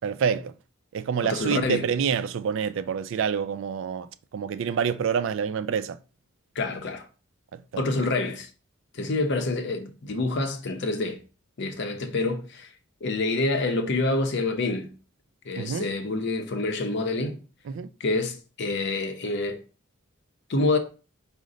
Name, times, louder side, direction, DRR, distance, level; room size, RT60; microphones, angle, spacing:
voice 1, 0.0-0.5 0.9-6.0 7.7-7.8 15.6-15.9 17.7-17.9, right 7 dB, 65° right, 0.3 m, -27 dB
voice 2, 1.2-1.9 6.6-7.1 7.8-8.5 8.9-11.2 11.6-12.7 13.0-14.9 15.5-17.4 18.0-19.6 20.5-20.8, left 2 dB, 60° left, 0.7 m, -27 dB
5.1 x 2.1 x 3.7 m
head